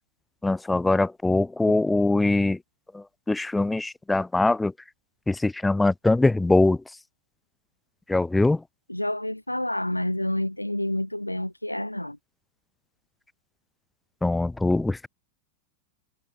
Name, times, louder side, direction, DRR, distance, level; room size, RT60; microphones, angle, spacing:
voice 1, 0.4-2.6 2.9-4.7 5.3-6.8 8.1-8.6 14.2-15.1, left 2 dB, 5° left, 0.6 m, -22 dB
voice 2, 8.9-12.2, left 1 dB, 85° left, 1.0 m, -28 dB
figure-of-eight pair, 90°, 0 cm